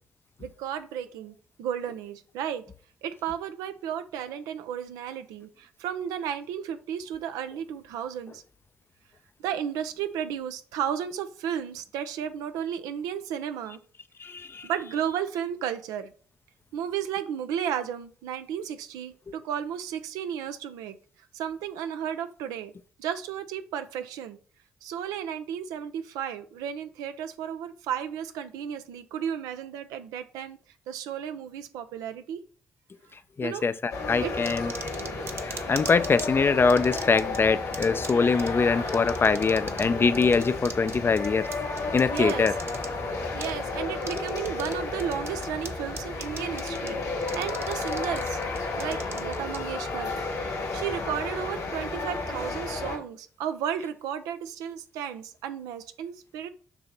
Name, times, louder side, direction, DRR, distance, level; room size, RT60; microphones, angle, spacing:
voice 1, 0.4-2.6 3.0-8.4 9.4-13.8 14.6-16.1 16.7-21.0 21.3-22.7 23.0-24.4 24.8-30.6 30.9-32.4 33.4-33.6 34.2-34.3 42.1-42.5 43.3-50.2 50.7-56.5, right 9 dB, 80° right, 0.5 m, -33 dB
voice 2, 14.2-14.7 33.4-34.7 35.4-41.5 41.9-42.5, left 4 dB, 40° left, 0.5 m, -23 dB
sound 1, 33.9-53.0, left 3 dB, 75° left, 1.9 m, -32 dB
sound 2, 34.5-36.3 36.7-37.4 37.7-38.1 38.4-38.5 38.9-39.9 40.1-42.9 43.4-43.5 44.0-44.7 45.0-45.7 46.0-46.9 47.2-49.6, right 4 dB, 45° right, 0.8 m, -39 dB
6.8 x 2.9 x 5.2 m
hypercardioid pair, 40°, 6 cm